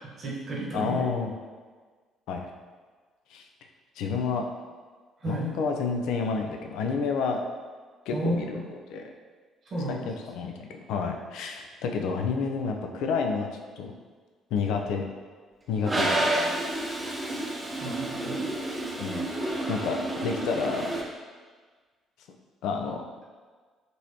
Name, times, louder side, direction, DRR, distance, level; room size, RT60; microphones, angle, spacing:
voice 1, 0.2-1.0 5.2-5.5 8.1-8.5 9.7-10.1 17.8-18.5, right 1 dB, 40° right, -5 dB, 1.3 m, -32 dB
voice 2, 0.7-1.3 2.3-2.5 3.3-3.5 4.0-4.4 5.2-7.4 8.1-9.0 9.9-13.5 13.8-13.9 14.5-15.1 15.7-16.3 19.0-19.3 19.7-20.9 22.6-23.0, left 5 dB, 60° left, 3 dB, 0.4 m, -29 dB
Toilet flush, 15.8-21.0, right 1 dB, 20° right, 0.8 m, -30 dB
5.3 x 3.0 x 2.8 m, 1.5 s
figure-of-eight pair, 45°, 0 cm